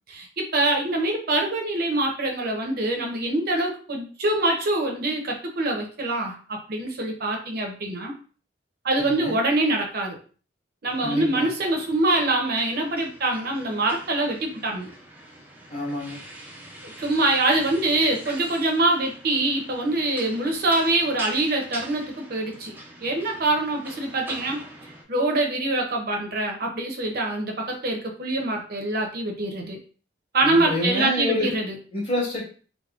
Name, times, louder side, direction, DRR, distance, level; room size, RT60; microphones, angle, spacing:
voice 1, 0.1-8.1 8.8-10.2 10.8-14.9 17.0-24.6 25.1-29.8 30.3-31.8, right 2 dB, 50° right, 2 dB, 0.6 m, -24 dB
voice 2, 9.0-9.4 11.0-11.5 15.7-16.2 30.4-31.5 31.9-32.4, left 1 dB, 30° left, -7 dB, 1.3 m, -28 dB
sound 1, 10.9-25.0, right 1 dB, 10° right, 0.4 m, -44 dB
3.4 x 2.0 x 2.3 m, 0.40 s
head